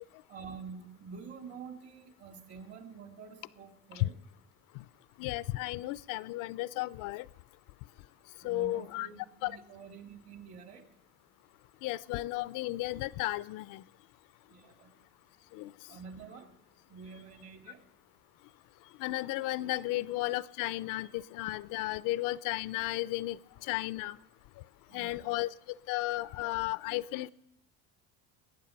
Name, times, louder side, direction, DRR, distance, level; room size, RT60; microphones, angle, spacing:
voice 1, 0.3-4.2 8.1-10.9 14.5-15.0 15.9-16.5 16.9-17.8 24.9-25.3, right 5 dB, 45° right, 5 dB, 2.1 m, -48 dB
voice 2, 5.2-7.3 8.4-9.1 9.4-9.5 11.8-13.8 15.5-15.7 19.0-23.4 23.7-24.2 24.9-25.5 25.9-27.3, left 18 dB, 70° left, 19 dB, 0.5 m, -34 dB
21.0 x 8.6 x 5.8 m, 0.90 s
cardioid pair, 120°, 33 cm